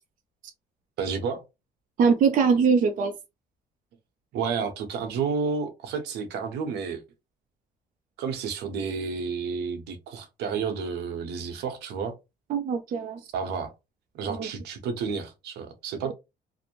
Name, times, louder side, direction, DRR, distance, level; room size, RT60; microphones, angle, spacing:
voice 1, 1.0-1.4 4.3-7.0 8.2-12.2 13.3-13.7 14.1-16.1, right 5 dB, 80° right, 0.8 m, -31 dB
voice 2, 2.0-3.1 12.5-13.2 14.3-14.5, right 5 dB, 50° right, 0.5 m, -22 dB
2.5 x 2.0 x 2.9 m
cardioid pair, 110°, 17 cm